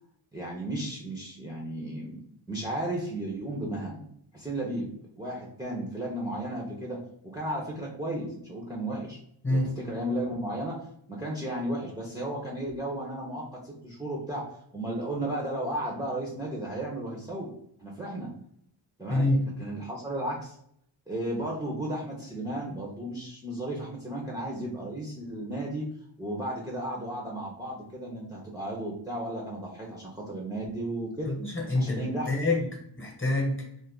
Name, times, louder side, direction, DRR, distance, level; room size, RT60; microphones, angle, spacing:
voice 1, 0.3-4.1 4.3-4.9 5.2-7.0 7.2-9.2 9.5-10.8 11.1-17.5 17.8-18.3 19.0-19.3 19.6-20.6 21.1-25.8 26.2-31.3 31.7-32.4, right 1 dB, 10° right, -3 dB, 0.6 m, -34 dB
voice 2, 19.1-19.5 31.2-32.7 33.0-33.6, left 2 dB, 25° left, 1 dB, 1.1 m, -26 dB
2.5 x 2.4 x 3.6 m, 0.71 s
wide cardioid pair, 75°, 47 cm